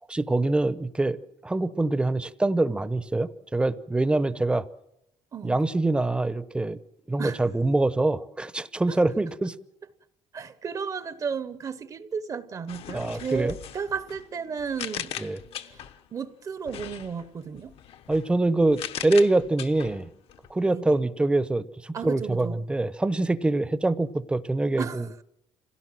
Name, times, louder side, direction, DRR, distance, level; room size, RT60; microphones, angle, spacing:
voice 1, 0.1-4.7 5.4-6.8 7.1-9.5 12.9-13.6 15.2-15.4 18.1-20.1 20.5-25.1, right 2 dB, 10° right, 0.8 m, -25 dB
voice 2, 10.3-15.2 15.6-15.8 16.1-17.7 20.6-20.9 21.9-22.6 24.8-25.1, right 6 dB, 35° right, 0.9 m, -34 dB
sound 1, 12.7-16.1 16.6-20.6, left 10 dB, 65° left, 1.1 m, -40 dB
27.0 x 17.0 x 7.6 m
cardioid pair, 150°, 11 cm